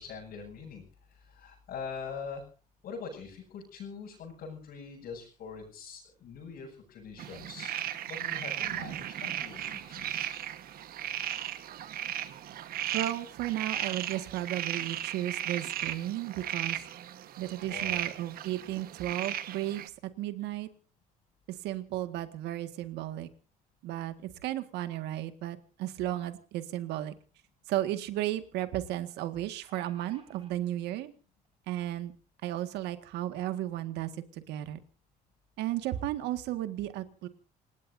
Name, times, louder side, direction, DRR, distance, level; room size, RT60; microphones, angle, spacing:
voice 1, 0.0-2.4 2.8-7.7 8.0-10.3 17.6-18.0, left 5 dB, 65° left, -4 dB, 7.6 m, -43 dB
sound 1, 7.2-19.9, right 11 dB, 60° right, 1.4 m, -36 dB
voice 2, 12.9-16.8 17.4-20.7 21.5-23.3 23.8-27.1 27.7-31.1 31.7-32.1 32.4-34.8 35.6-37.3, right 13 dB, 85° right, 9 dB, 1.9 m, -34 dB
sound 2, 27.2-27.3 27.6-27.7 29.3-30.5 31.4-31.5 31.9-32.0, right 5 dB, 35° right, 3.8 m, -57 dB
28.0 x 18.0 x 2.7 m, 0.37 s
cardioid pair, 115°, 17 cm